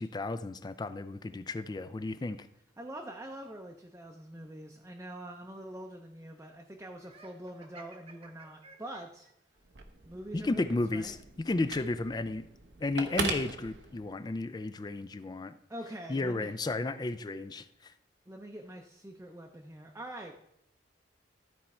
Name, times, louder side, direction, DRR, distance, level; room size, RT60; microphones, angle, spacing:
voice 1, 0.0-2.5 10.3-12.5 12.8-15.6 16.1-17.9, left 2 dB, 25° left, 12 dB, 0.4 m, -33 dB
voice 2, 2.8-9.3 10.1-11.2 15.7-16.5 18.3-20.3, right 1 dB, 15° right, 1 dB, 0.6 m, -44 dB
Laughter, 7.0-9.3, right 2 dB, 35° right, 1.0 m, -53 dB
Telephone, 9.6-14.4, right 4 dB, 90° right, 1.0 m, -40 dB
13.0 x 4.4 x 4.2 m, 0.77 s
head